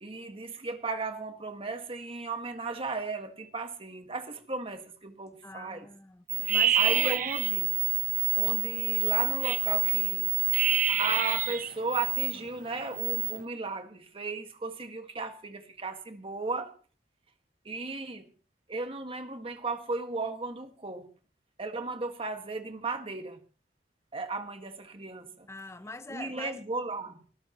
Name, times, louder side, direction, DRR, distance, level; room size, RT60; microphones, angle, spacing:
voice 1, 0.0-5.9 6.8-7.7 8.3-10.3 10.9-16.7 17.7-18.2 18.7-21.1 21.6-23.4 24.1-25.5 26.1-27.2, right 3 dB, 35° right, 1.7 m, -35 dB
voice 2, 5.4-7.2 25.5-26.6, left 2 dB, 15° left, 0.7 m, -43 dB
sound 1, 6.3-12.3 12.7-13.4, right 10 dB, 50° right, 0.9 m, -27 dB
24.0 x 13.0 x 3.0 m
head